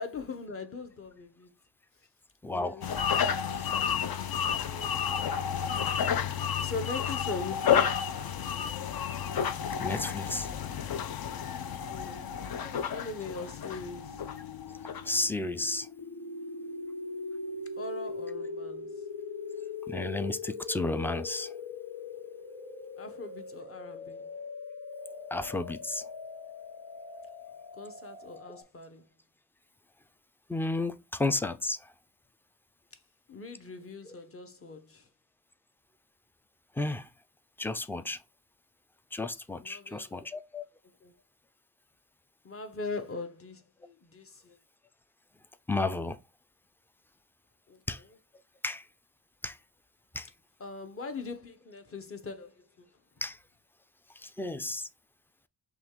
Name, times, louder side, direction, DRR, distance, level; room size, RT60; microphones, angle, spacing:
voice 1, 0.0-1.5 2.5-2.9 4.6-5.3 6.3-8.1 11.9-12.4 12.9-14.2 17.8-19.0 23.0-24.3 27.7-29.0 33.3-35.1 39.6-40.2 41.0-41.1 42.4-44.6 47.7-47.8 50.6-52.9, left 3 dB, 30° left, 0.9 m, -41 dB
voice 2, 2.4-2.8 3.6-3.7 9.8-10.5 12.6-12.7 15.1-15.9 19.9-21.5 25.3-26.1 30.5-31.8 36.8-37.1 37.6-38.2 39.1-40.6 45.7-46.2 47.9-48.0 48.6-48.8 49.4-49.6 50.1-50.3 53.2-53.4 54.2-54.9, left 2 dB, 5° left, 0.3 m, -32 dB
sound 1, 2.8-15.2, left 8 dB, 55° left, 0.6 m, -31 dB
sound 2, 9.7-28.6, left 4 dB, 80° left, 1.1 m, -42 dB
6.0 x 2.4 x 3.6 m
wide cardioid pair, 110°, 43 cm